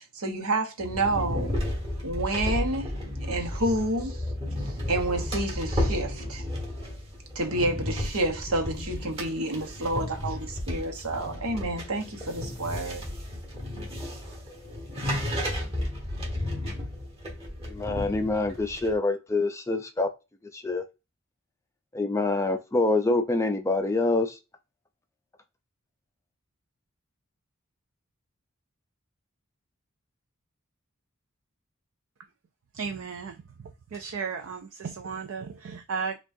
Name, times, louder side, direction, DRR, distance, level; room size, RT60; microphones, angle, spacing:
voice 1, 0.0-1.5 2.0-2.9 3.3-4.2 4.6-6.4 7.3-13.1, right 2 dB, 80° right, 1.0 m, -29 dB
sound 1, 0.8-18.9, left 1 dB, 25° right, 1.3 m, -33 dB
voice 2, 17.6-20.1 20.5-20.8 21.9-24.4, left 2 dB, 15° left, 0.3 m, -26 dB
voice 3, 32.7-33.4 33.9-36.2, right 5 dB, 65° right, 0.4 m, -34 dB
6.0 x 2.3 x 2.6 m
head